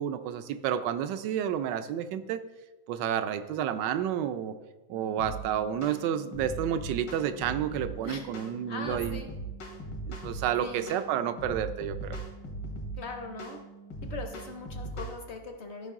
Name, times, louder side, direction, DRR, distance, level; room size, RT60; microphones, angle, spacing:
voice 1, 0.0-2.4 2.9-4.5 4.9-9.2 10.1-12.2, right 9 dB, 80° right, 11 dB, 1.2 m, -30 dB
sound 1, 4.9-14.9, right 6 dB, 5° right, 0.4 m, -51 dB
sound 2, 5.2-5.4 5.8-6.0 6.3-7.9 8.3-8.5 8.9-10.5 10.9-11.1 11.4-13.0 13.4-13.6 13.9-15.2, right 2 dB, 80° left, 2.1 m, -39 dB
voice 2, 8.7-9.4 10.6-11.0 13.0-13.6 14.0-15.9, left 3 dB, 55° left, 5 dB, 0.8 m, -40 dB
13.0 x 5.2 x 3.6 m, 1.1 s
omnidirectional pair, 1.9 m